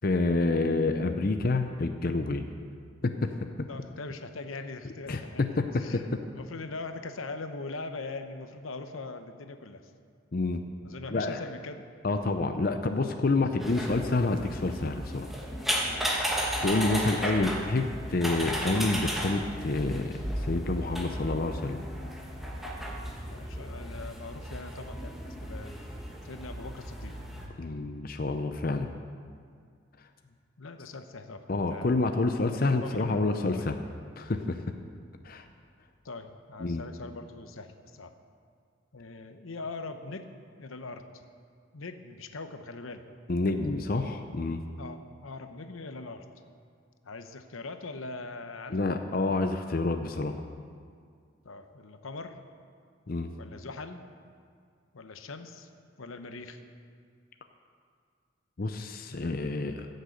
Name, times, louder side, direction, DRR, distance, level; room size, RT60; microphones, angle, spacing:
voice 1, 0.0-2.4 3.0-3.3 5.1-5.2 5.6-5.7 5.9-6.2 10.3-10.6 11.1-11.4 12.0-15.3 16.6-21.8 27.6-28.9 31.5-33.8 34.2-34.6 35.2-35.4 36.6-36.8 43.3-44.6 48.7-50.4 53.1-53.3 58.6-59.9, left 2 dB, 45° left, 6 dB, 0.6 m, -28 dB
voice 2, 3.7-9.8 10.8-11.8 15.7-16.2 17.3-17.5 23.2-25.8 26.2-27.2 30.2-31.9 32.7-33.2 33.5-33.7 36.0-38.1 38.9-40.3 40.6-41.3 41.7-43.0 44.8-46.2 47.0-48.8 51.4-52.4 53.4-54.0 54.9-55.7 56.0-56.6, left 3 dB, 90° left, 8 dB, 0.9 m, -41 dB
sound 1, 13.6-27.5, equal, ahead, 1.2 m, -34 dB
15.0 x 6.6 x 7.9 m, 2.1 s
head